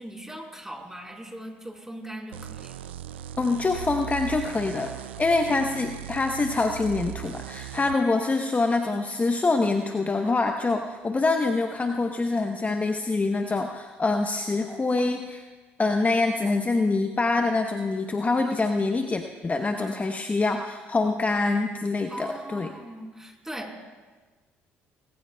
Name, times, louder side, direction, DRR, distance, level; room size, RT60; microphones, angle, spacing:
voice 1, 0.0-2.9 22.1-23.8, right 1 dB, 10° right, -1 dB, 4.3 m, -40 dB
sound 1, 2.3-8.0, right 12 dB, 90° right, 0.3 m, -38 dB
voice 2, 3.4-15.4 15.8-22.7, left 3 dB, 25° left, 5 dB, 0.9 m, -25 dB
19.5 x 16.5 x 2.3 m, 1.3 s
hypercardioid pair, 55°, 6 cm